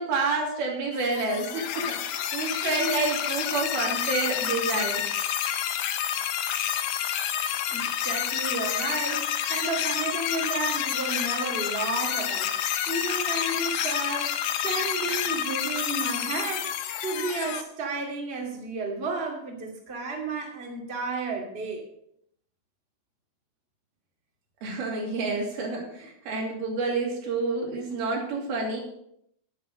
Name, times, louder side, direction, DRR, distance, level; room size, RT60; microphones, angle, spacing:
voice 1, 0.0-5.0 24.6-28.8, right 3 dB, 90° right, -1 dB, 4.6 m, -29 dB
sound 1, 0.9-17.6, left 10 dB, 75° left, 1.8 m, -29 dB
voice 2, 7.7-12.5 12.9-14.4 14.6-21.8, right 3 dB, 20° right, -1 dB, 2.0 m, -32 dB
10.0 x 9.4 x 5.5 m, 0.72 s
omnidirectional pair, 4.2 m